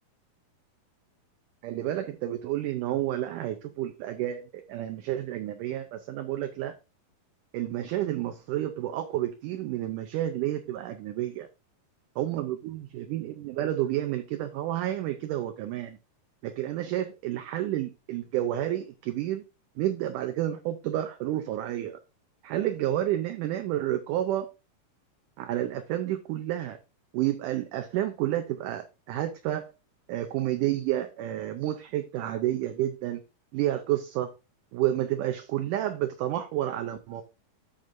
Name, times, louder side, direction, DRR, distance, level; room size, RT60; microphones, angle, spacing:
voice 1, 1.6-6.7 7.5-11.5 12.2-16.0 16.4-19.4 19.8-22.0 22.4-24.5 25.4-26.8 27.1-29.7 30.1-33.2 33.5-34.3 34.7-37.2, right 13 dB, 75° right, 2.0 m, -30 dB
14.0 x 5.3 x 2.6 m
omnidirectional pair, 4.2 m